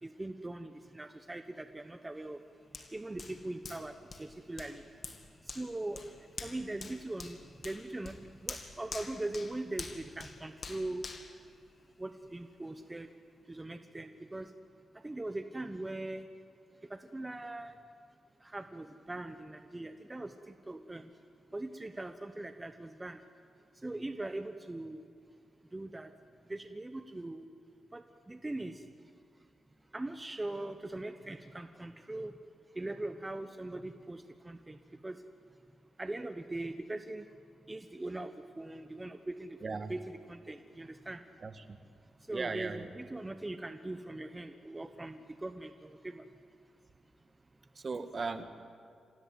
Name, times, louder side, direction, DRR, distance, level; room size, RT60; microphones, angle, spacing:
voice 1, 0.0-2.4 2.9-4.8 5.5-11.0 12.0-13.1 13.5-14.5 15.0-16.3 16.9-17.8 18.4-21.1 21.5-23.2 23.8-25.0 25.7-26.1 26.5-27.4 27.9-28.8 29.9-32.3 32.7-35.2 36.0-37.3 37.7-41.2 42.3-46.3, right 2 dB, 20° right, 8 dB, 1.1 m, -41 dB
Hands, 2.7-12.3 12.7-12.9, left 4 dB, 55° left, 2.4 m, -47 dB
voice 2, 39.6-39.9 41.4-41.8 42.3-42.9 47.7-48.4, right 4 dB, 50° right, 9 dB, 1.7 m, -37 dB
26.0 x 16.5 x 9.3 m, 2.3 s
cardioid pair, 55°, 0 cm